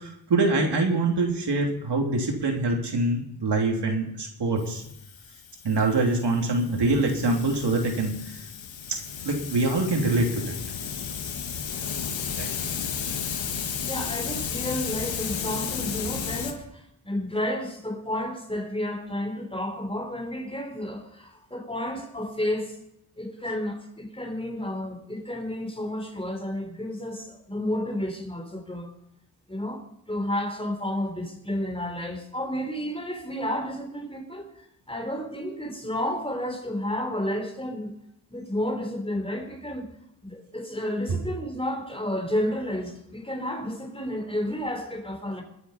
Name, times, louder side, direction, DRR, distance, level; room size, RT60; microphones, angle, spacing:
voice 1, 0.0-4.8 5.6-8.4 8.9-10.6 12.4-12.5, right 2 dB, 65° right, 2 dB, 3.0 m, -25 dB
Hiss, 4.6-16.5, left 7 dB, 85° left, 1.8 m, -33 dB
voice 2, 13.8-22.8 23.2-28.9 29.5-34.5 34.9-37.9 38.3-39.9 40.2-45.4, left 1 dB, 10° left, 2 dB, 3.8 m, -31 dB
21.0 x 8.3 x 5.7 m, 0.79 s
cardioid pair, 80°, 44 cm